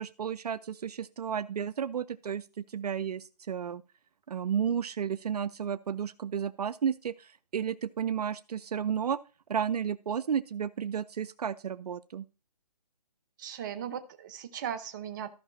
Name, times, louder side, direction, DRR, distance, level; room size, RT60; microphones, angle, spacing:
voice 1, 0.0-3.8 4.3-9.2 9.5-12.2, right 8 dB, 70° right, 15 dB, 0.5 m, -32 dB
voice 2, 13.4-15.3, right 9 dB, 30° right, 9 dB, 0.8 m, -37 dB
14.5 x 5.7 x 2.7 m, 0.34 s
hypercardioid pair, 150°, 21 cm